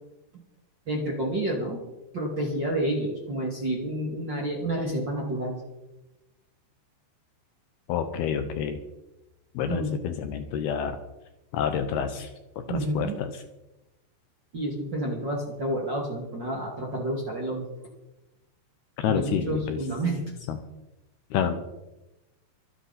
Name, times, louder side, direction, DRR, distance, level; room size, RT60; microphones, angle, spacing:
voice 1, 0.9-1.8 2.1-5.6 9.7-9.9 12.7-13.2 14.5-17.7 19.1-20.5, right 1 dB, 35° right, -1 dB, 2.1 m, -29 dB
voice 2, 7.9-8.8 9.5-11.0 11.5-13.4 19.0-19.8 20.5-20.6 21.3-21.6, left 8 dB, 75° left, 8 dB, 2.6 m, -29 dB
24.5 x 10.0 x 4.2 m, 0.98 s
omnidirectional pair, 5.2 m